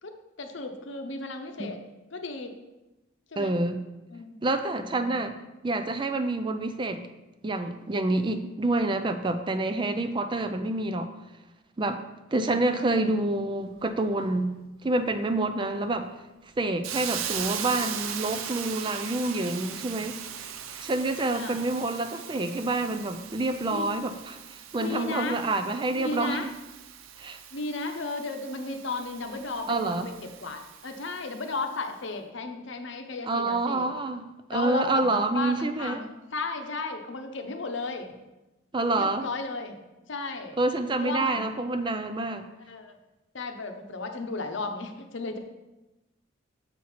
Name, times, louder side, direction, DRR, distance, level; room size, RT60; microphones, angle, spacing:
voice 1, 0.0-1.8 2.1-2.6 3.3-3.5 4.1-4.4 4.9-5.2 12.3-12.6 21.3-21.6 23.7-24.2 24.8-25.4 25.9-26.5 27.5-33.9 34.5-38.2 38.9-39.8 40.1-40.6 41.0-41.5 42.7-43.0 43.3-45.4, left 3 dB, 60° left, 5 dB, 0.8 m, -34 dB
voice 2, 3.4-3.8 4.4-5.4 5.6-7.0 7.4-11.1 11.8-12.0 12.3-14.5 14.8-16.1 16.6-20.2 20.7-26.4 27.2-27.4 29.7-30.1 33.3-36.0 38.7-39.3 40.6-42.4, right 2 dB, 25° right, 9 dB, 0.4 m, -27 dB
Hiss, 16.8-31.6, right 9 dB, 80° right, 0.6 m, -39 dB
7.4 x 4.4 x 5.7 m, 1.0 s
head